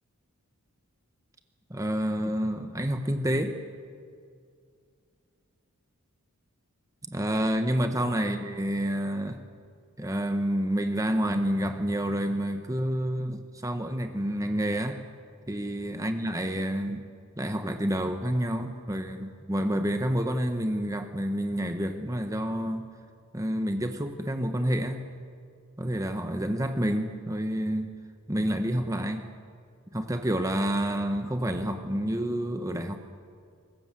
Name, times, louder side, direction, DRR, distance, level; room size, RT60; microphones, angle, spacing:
voice 1, 1.7-3.6 7.1-9.4 10.0-15.0 15.5-17.0 17.4-22.8 23.3-25.0 25.8-27.9 28.3-29.3 29.9-33.0, equal, 15° right, 6 dB, 1.2 m, -28 dB
24.0 x 21.0 x 7.6 m, 2.2 s
head